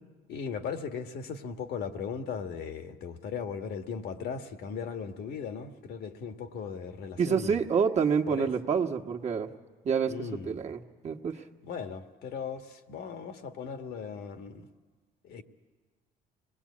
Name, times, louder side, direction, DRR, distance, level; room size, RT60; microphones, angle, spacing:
voice 1, 0.3-7.6 8.3-8.5 10.1-10.6 11.6-14.7 15.2-15.4, left 6 dB, 70° left, 1.5 m, -37 dB
voice 2, 7.2-9.5 9.8-11.4, right 6 dB, 40° right, 1.4 m, -28 dB
26.0 x 20.5 x 8.5 m
cardioid pair, 110°, 17 cm